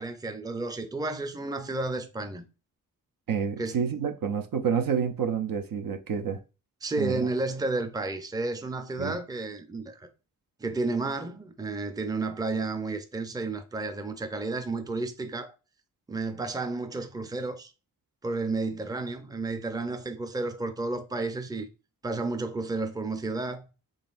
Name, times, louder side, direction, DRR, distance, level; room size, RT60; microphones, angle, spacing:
voice 1, 0.0-2.4 3.6-3.8 6.8-10.1 10.6-15.5 16.1-17.7 18.2-21.7 22.0-23.7, right 3 dB, 10° right, 0.5 m, -32 dB
voice 2, 3.3-6.4 6.9-7.3 9.0-9.2, right 7 dB, 60° right, 0.6 m, -29 dB
3.9 x 3.3 x 2.5 m
cardioid pair, 55°, 38 cm